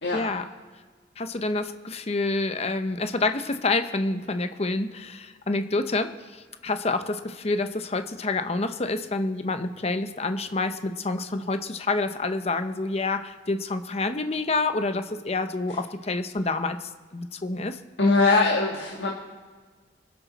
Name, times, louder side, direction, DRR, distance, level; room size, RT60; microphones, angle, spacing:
voice 1, 0.1-0.5 1.2-17.8, left 3 dB, 35° left, 9 dB, 0.8 m, -28 dB
voice 2, 18.0-19.1, left 3 dB, 90° left, -1 dB, 1.7 m, -21 dB
23.5 x 10.5 x 4.1 m, 1.5 s
head